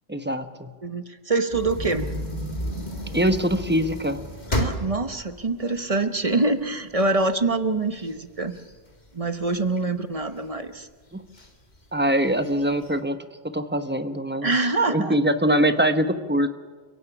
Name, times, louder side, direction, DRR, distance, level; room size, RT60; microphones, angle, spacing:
voice 1, 0.1-0.7 3.1-4.2 11.1-11.2 11.9-13.2 13.4-14.5 14.9-16.5, right 1 dB, 10° right, 9 dB, 1.0 m, -23 dB
voice 2, 0.8-2.1 4.5-8.5 9.1-10.9 14.4-15.2, right 3 dB, 35° right, 9 dB, 1.0 m, -25 dB
sound 1, 1.5-6.7 7.2-7.3 7.6-9.7 10.2-10.7 11.3-11.5 11.8-11.9 12.3-12.9, equal, 40° left, 2.2 m, -32 dB
30.0 x 17.0 x 6.1 m, 1.4 s
omnidirectional pair, 1.1 m